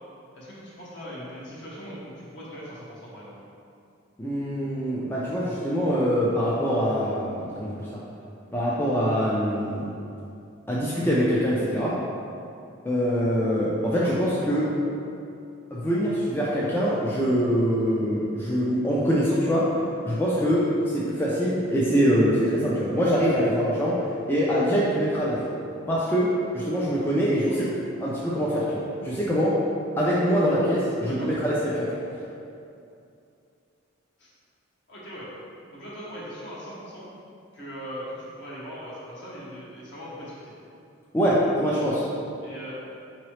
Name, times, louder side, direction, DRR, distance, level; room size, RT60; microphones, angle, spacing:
voice 1, 0.3-3.3 13.9-14.1 27.5-27.7 31.0-31.3 34.2-34.3 34.9-35.3 35.7-37.1 37.5-40.5 42.4-42.7, equal, 55° left, -7 dB, 1.1 m, -40 dB
voice 2, 4.2-7.8 8.5-9.9 10.7-12.0 12.8-14.7 15.7-19.7 20.1-24.0 24.3-25.4 25.9-27.5 28.0-29.6 30.0-31.9 41.1-42.1, equal, 10° left, -7 dB, 0.4 m, -24 dB
4.7 x 2.9 x 3.1 m, 2.6 s
head